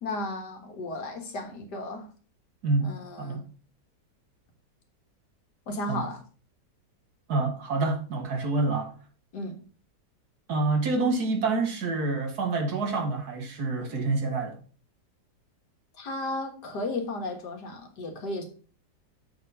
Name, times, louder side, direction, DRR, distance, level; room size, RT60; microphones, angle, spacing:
voice 1, 0.0-2.1 2.8-3.4 5.7-6.2 9.3-9.6 16.0-18.4, left 2 dB, 70° left, 2.1 m, -34 dB
voice 2, 7.3-8.9 10.5-14.6, right 3 dB, 60° right, 1.8 m, -27 dB
7.2 x 4.5 x 5.5 m
omnidirectional pair, 1.9 m